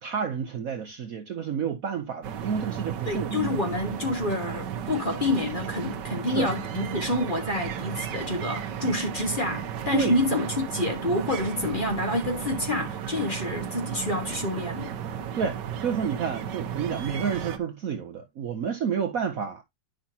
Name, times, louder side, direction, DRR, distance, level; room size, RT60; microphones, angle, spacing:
voice 1, 0.0-3.5 6.3-6.5 9.9-10.1 15.3-19.6, right 7 dB, 55° right, 1.2 m, -30 dB
sound 1, 2.2-17.6, right 8 dB, 70° right, 1.5 m, -34 dB
voice 2, 3.1-15.0, left 2 dB, 30° left, 1.7 m, -28 dB
10.5 x 5.7 x 2.8 m
omnidirectional pair, 2.0 m